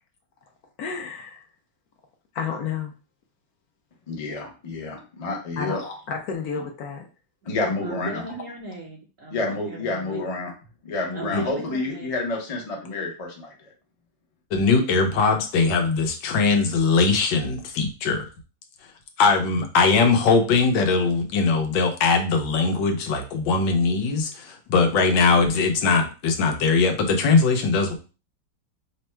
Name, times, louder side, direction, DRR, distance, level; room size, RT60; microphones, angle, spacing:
voice 1, 0.8-1.4 2.3-2.9 5.6-7.1, left 6 dB, 65° left, 2 dB, 1.0 m, -31 dB
voice 2, 4.1-5.8 7.4-8.2 9.3-10.5 10.8-13.5, left 3 dB, 40° left, 0 dB, 0.5 m, -29 dB
voice 3, 7.8-10.2 11.1-12.1, right 3 dB, 65° right, 0 dB, 0.8 m, -36 dB
voice 4, 14.5-18.3 19.2-27.9, left 4 dB, 90° left, 4 dB, 1.5 m, -21 dB
3.4 x 2.2 x 4.3 m, 0.33 s
omnidirectional pair, 2.0 m